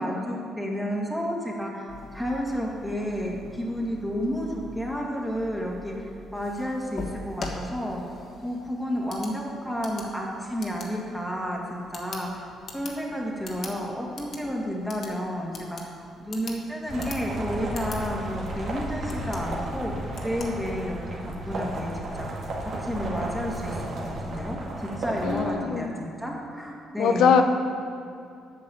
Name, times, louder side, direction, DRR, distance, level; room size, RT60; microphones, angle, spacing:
voice 1, 0.0-8.0 8.4-12.5 12.7-22.3 22.8-24.6 25.0-27.4, equal, ahead, -2 dB, 2.1 m, -31 dB
sound 1, 1.9-21.1, left 3 dB, 55° left, 1.4 m, -44 dB
sound 2, 16.9-25.5, right 1 dB, 60° right, 1.9 m, -33 dB
voice 2, 25.2-25.9 27.0-27.4, left 7 dB, 80° left, 6 dB, 0.6 m, -21 dB
8.5 x 6.3 x 7.2 m, 2.4 s
cardioid pair, 90°, 0 cm